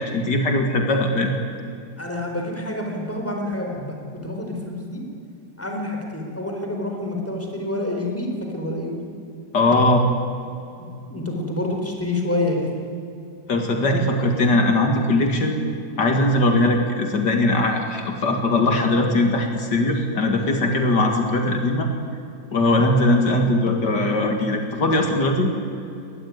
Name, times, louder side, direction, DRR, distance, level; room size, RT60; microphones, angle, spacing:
voice 1, 0.0-1.3 9.5-10.0 13.5-15.6 16.0-21.9 22.5-25.5, left 2 dB, 70° left, 4 dB, 2.7 m, -20 dB
voice 2, 2.0-4.0 4.2-5.0 5.6-9.0 11.1-12.7, left 1 dB, 5° left, 1 dB, 4.3 m, -27 dB
23.5 x 19.0 x 9.5 m, 2.6 s
omnidirectional pair, 1.9 m